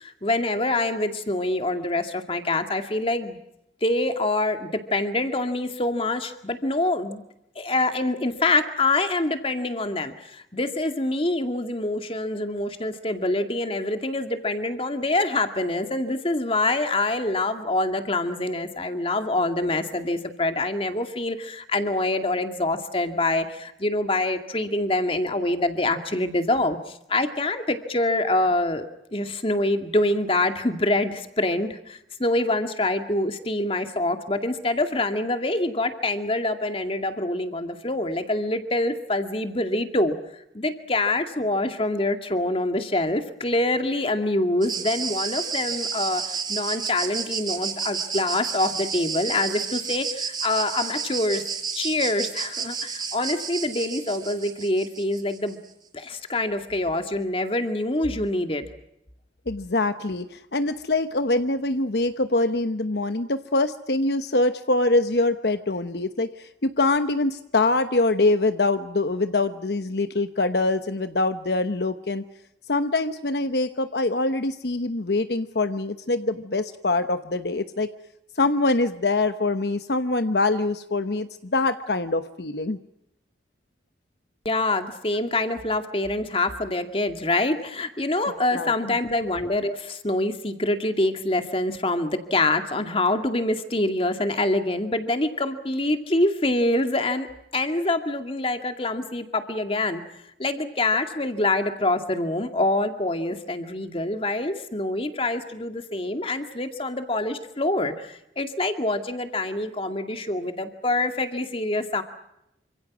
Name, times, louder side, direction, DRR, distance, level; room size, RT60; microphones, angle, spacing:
voice 1, 0.0-3.4 3.8-7.2 7.6-28.8 29.1-40.2 40.5-51.4 51.7-55.6 55.9-58.7 84.4-97.3 97.5-100.0 100.4-112.0, left 2 dB, 30° left, 7 dB, 2.3 m, -25 dB
sound 1, 44.6-55.6, right 6 dB, 25° right, 4.8 m, -31 dB
voice 2, 59.5-72.2 72.7-77.9 78.4-82.8 88.5-89.0, left 2 dB, 65° left, 9 dB, 1.0 m, -24 dB
28.0 x 26.5 x 6.2 m, 0.84 s
head